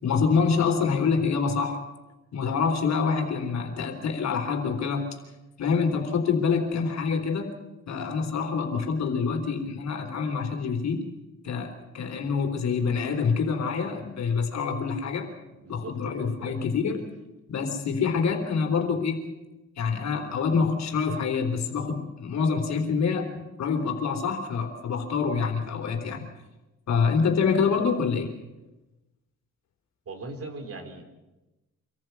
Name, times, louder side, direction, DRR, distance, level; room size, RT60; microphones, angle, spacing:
voice 1, 0.0-1.8 2.3-5.0 5.6-7.5 7.9-11.0 11.4-15.3 15.7-17.1 17.5-19.3 19.8-26.3 26.9-28.3, left 5 dB, 60° left, 5 dB, 3.7 m, -26 dB
voice 2, 15.5-16.7 30.1-31.0, right 3 dB, 50° right, 6 dB, 3.7 m, -40 dB
25.5 x 14.5 x 8.2 m, 1.0 s
cardioid pair, 90°, 30 cm